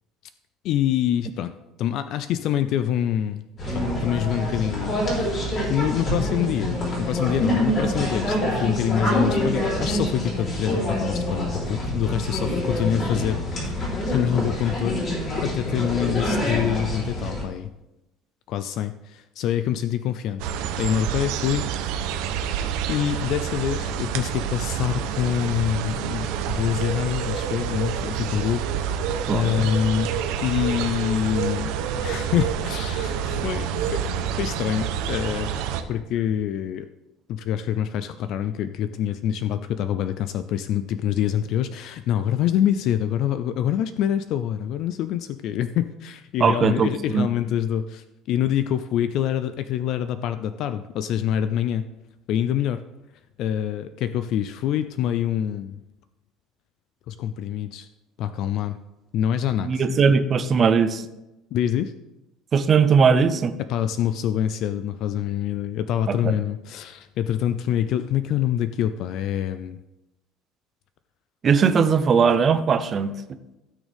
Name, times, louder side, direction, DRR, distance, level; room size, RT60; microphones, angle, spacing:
voice 1, 0.6-1.5 1.8-3.4 3.7-5.3 5.7-15.0 15.4-17.7 18.5-20.4 20.8-22.3 22.9-29.0 29.3-30.1 30.4-34.0 34.4-35.5 35.9-36.9 37.3-51.9 52.3-52.8 53.4-55.8 57.1-57.9 58.2-58.8 59.1-60.0 61.5-61.9 63.7-69.8, left 10 dB, 55° left, 11 dB, 0.4 m, -26 dB
sound 1, 3.6-17.4, equal, 35° left, 3.7 m, -26 dB
sound 2, 20.4-35.8, right 8 dB, 75° right, 0.9 m, -28 dB
voice 2, 29.3-29.7 46.4-47.3 59.6-61.0 62.5-63.5 66.1-66.3 71.4-73.2, right 6 dB, 30° right, 10 dB, 0.7 m, -19 dB
16.0 x 6.3 x 3.5 m, 0.97 s
cardioid pair, 150°, 0 cm